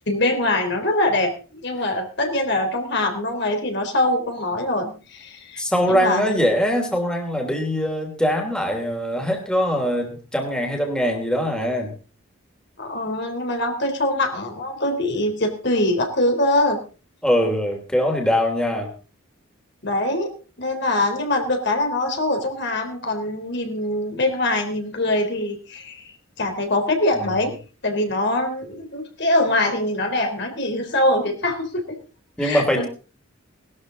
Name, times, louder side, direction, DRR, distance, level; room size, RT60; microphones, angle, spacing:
voice 1, 0.1-5.6 5.9-6.3 12.8-16.8 19.8-20.3 20.6-27.5 27.8-32.0 32.4-32.9, left 1 dB, 55° left, 4 dB, 3.7 m, -23 dB
voice 2, 5.6-11.9 17.2-18.9 27.2-27.4 32.4-32.9, equal, 5° left, 2 dB, 3.0 m, -22 dB
19.5 x 13.0 x 4.0 m, 0.36 s
head